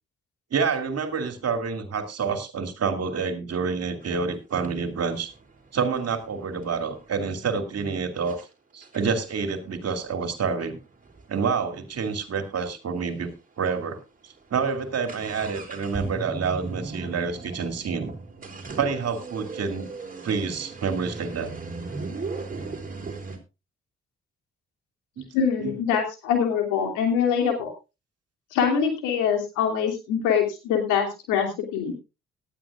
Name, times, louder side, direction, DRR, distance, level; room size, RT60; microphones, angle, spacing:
voice 1, 0.5-5.3 5.7-8.4 8.7-10.8 11.3-14.0 14.2-18.1 18.8-19.9 20.2-21.5 25.2-25.3 25.6-25.8, right 5 dB, 55° right, 8 dB, 2.6 m, -28 dB
sound 1, 4.0-4.1 4.6-7.2 7.8-7.9 8.3-8.4 8.8-12.5 12.8-12.9 13.1-13.2 13.8-13.9 14.2-23.4, right 3 dB, 25° right, 3.8 m, -38 dB
voice 2, 25.3-27.7 28.5-31.9, left 7 dB, 75° left, 3 dB, 3.0 m, -24 dB
18.0 x 12.0 x 2.5 m, 0.27 s
hypercardioid pair, 40°, 30 cm